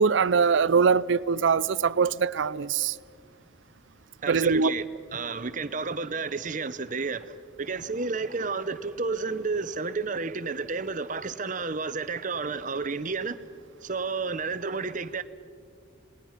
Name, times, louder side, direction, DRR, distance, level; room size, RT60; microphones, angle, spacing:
voice 1, 0.0-3.0 4.3-4.7, right 5 dB, 65° right, 0.5 m, -22 dB
voice 2, 4.2-4.8 5.1-13.4 13.8-15.2, right 4 dB, 40° right, 0.8 m, -31 dB
27.5 x 20.0 x 5.8 m
head